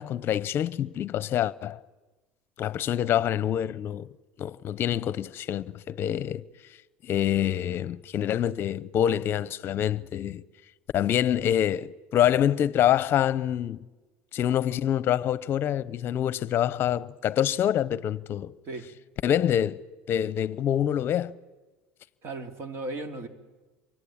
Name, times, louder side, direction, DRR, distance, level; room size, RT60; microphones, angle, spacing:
voice 1, 0.0-1.8 2.6-4.1 4.4-6.4 7.0-10.4 10.9-13.8 14.3-18.5 19.2-19.8 20.1-21.3, left 10 dB, 45° left, 0.8 m, -26 dB
voice 2, 22.2-23.3, right 2 dB, 50° right, 2.6 m, -36 dB
28.0 x 24.5 x 8.7 m
cardioid pair, 130°, 5 cm